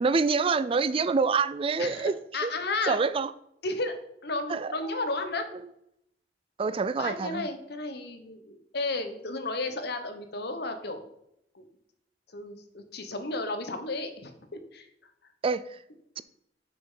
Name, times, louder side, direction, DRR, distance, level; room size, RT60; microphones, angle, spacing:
voice 1, 0.0-2.1 2.4-2.5 2.9-3.3 4.5-4.7 6.6-7.5 15.4-15.6 16.2-16.3, right 4 dB, 30° right, 14 dB, 0.3 m, -26 dB
voice 2, 1.8-3.0 3.6-3.9 4.2-5.5 7.0-11.1 11.5-11.6 12.3-14.9, left 2 dB, 60° left, 7 dB, 1.1 m, -33 dB
6.6 x 5.6 x 5.6 m, 0.76 s
head